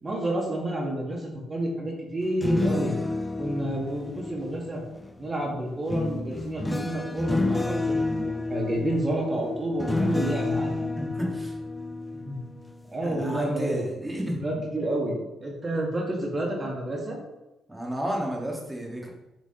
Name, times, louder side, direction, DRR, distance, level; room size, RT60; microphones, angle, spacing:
voice 1, 0.0-2.9 3.4-4.8 5.2-10.9 12.1-12.4 12.9-14.1 14.4-17.2, right 1 dB, 30° right, -2 dB, 1.9 m, -30 dB
sound 1, 2.2-5.1 5.9-12.8 13.2-13.5, left 2 dB, 15° left, 0.4 m, -30 dB
voice 2, 11.0-11.5 13.0-14.6 17.7-19.1, equal, 10° right, -1 dB, 1.8 m, -31 dB
7.6 x 3.9 x 4.0 m, 0.97 s
cardioid pair, 90°, 0 cm